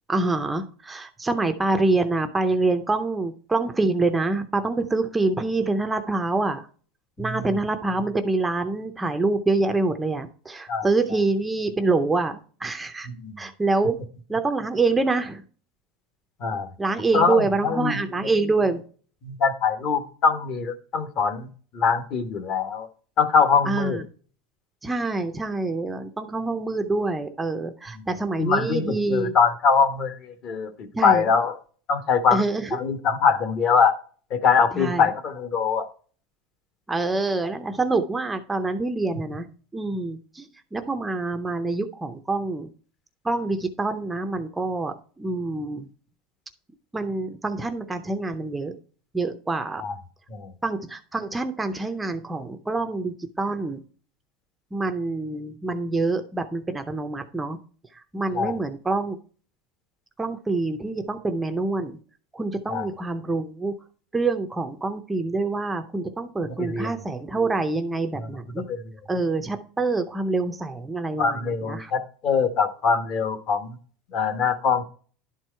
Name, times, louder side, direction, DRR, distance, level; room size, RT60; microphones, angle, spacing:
voice 1, 0.1-6.7 7.2-13.1 13.4-14.0 14.3-15.4 16.8-18.8 23.6-24.0 24.8-29.3 30.9-31.3 32.3-32.8 34.7-35.1 36.9-39.5 39.7-42.7 43.2-45.9 46.9-48.7 49.1-49.8 50.6-53.8 54.7-57.6 57.9-59.2 60.2-62.0 62.3-63.7 64.1-68.7 69.1-71.9, right 3 dB, 10° right, 7 dB, 0.6 m, -26 dB
voice 2, 13.0-13.4 16.4-16.7 17.1-18.3 19.2-21.5 21.7-22.9 23.2-24.0 28.0-28.1 28.4-30.7 31.0-31.5 31.9-32.4 32.7-33.9 34.3-35.9 49.8-49.9 50.3-50.5 58.3-58.6 62.7-62.9 66.6-66.9 68.7-68.8 71.2-73.8 74.1-74.8, left 5 dB, 40° left, 10 dB, 1.3 m, -23 dB
11.5 x 4.6 x 4.4 m, 0.42 s
supercardioid pair, 160°, 0 cm